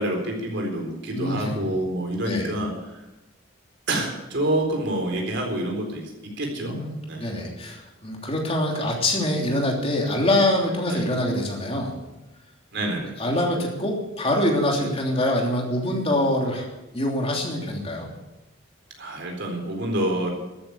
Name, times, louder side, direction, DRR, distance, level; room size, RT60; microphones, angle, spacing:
voice 1, 0.0-3.0 3.9-6.1 6.4-6.8 7.1-7.3 9.1-9.2 10.9-11.1 12.7-13.3 14.8-14.9 19.0-20.3, right 1 dB, 65° right, 2 dB, 4.1 m, -27 dB
voice 2, 1.1-1.6 2.2-2.5 6.6-11.9 13.2-16.7 16.9-18.1, left 1 dB, 30° left, 0 dB, 3.1 m, -24 dB
13.5 x 9.4 x 8.6 m, 0.98 s
head